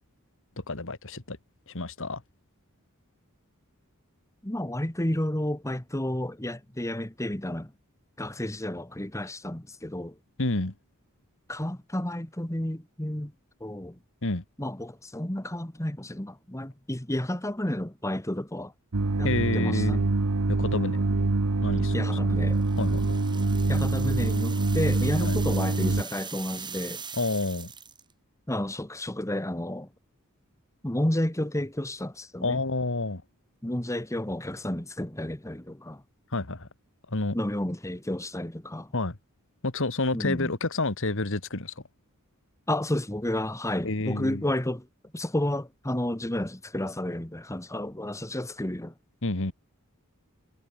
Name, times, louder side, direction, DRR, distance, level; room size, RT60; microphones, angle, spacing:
voice 1, 0.7-1.4 1.7-2.2 10.4-10.7 14.2-14.4 19.2-20.0 20.5-21.0 21.6-21.9 22.8-23.1 25.2-25.4 27.1-27.7 32.4-33.2 36.3-36.7 37.1-37.4 38.9-39.2 39.6-41.7 43.8-44.5 49.2-49.5, left 2 dB, 60° left, 2.0 m, -29 dB
voice 2, 4.4-7.7 8.2-10.1 11.5-13.3 13.6-14.0 14.6-18.7 19.2-20.0 21.9-22.6 23.7-27.0 28.5-29.9 30.8-32.6 33.6-36.0 37.3-38.9 40.1-40.5 42.7-44.9 45.1-48.9, left 1 dB, 15° left, 1.6 m, -31 dB
sound 1, 18.9-26.0, right 2 dB, 80° right, 1.1 m, -25 dB
sound 2, 22.5-28.1, right 6 dB, 20° right, 4.4 m, -42 dB
head